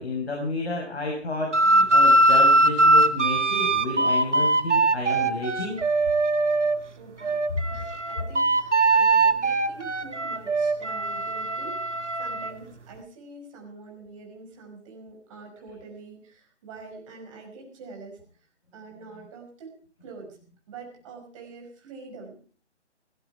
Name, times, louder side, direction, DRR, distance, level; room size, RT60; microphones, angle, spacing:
voice 1, 0.0-5.8, left 2 dB, 60° left, 0 dB, 5.8 m, -31 dB
sound 1, 1.5-6.8 7.2-12.5, right 2 dB, 80° right, 1.8 m, -21 dB
voice 2, 7.0-7.4 7.7-18.2 18.7-19.7 20.0-20.4 20.7-22.4, right 4 dB, 25° right, 1 dB, 5.7 m, -45 dB
17.5 x 16.5 x 4.7 m, 0.40 s
figure-of-eight pair, 150°, 35 cm